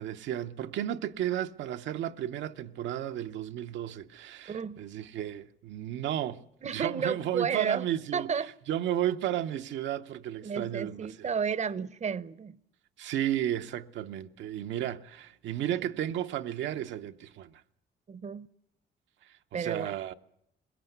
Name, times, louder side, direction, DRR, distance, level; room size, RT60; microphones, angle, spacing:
voice 1, 0.0-8.3 8.7-11.3 13.0-17.6 19.5-20.1, right 11 dB, 85° right, 0.8 m, -33 dB
voice 2, 4.5-4.8 6.6-7.9 8.1-8.5 10.4-12.6 18.1-18.5 19.5-20.1, right 6 dB, 40° right, 0.7 m, -32 dB
21.0 x 17.5 x 8.0 m
cardioid pair, 85°, 19 cm